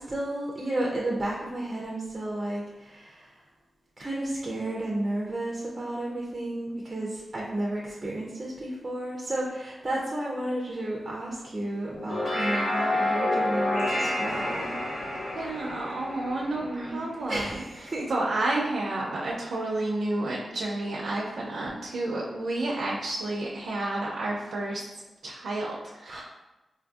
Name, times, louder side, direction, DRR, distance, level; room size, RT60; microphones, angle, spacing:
voice 1, 0.0-3.4 4.0-15.3 16.6-18.1 26.1-26.2, right 1 dB, 25° right, -3 dB, 0.4 m, -32 dB
sound 1, 11.9-17.5, left 1 dB, 65° left, 0.8 m, -29 dB
voice 2, 15.3-17.6 18.1-24.9 25.2-26.2, right 2 dB, 85° right, -3 dB, 0.5 m, -30 dB
4.3 x 2.6 x 2.3 m, 1.1 s
wide cardioid pair, 155°, 0 cm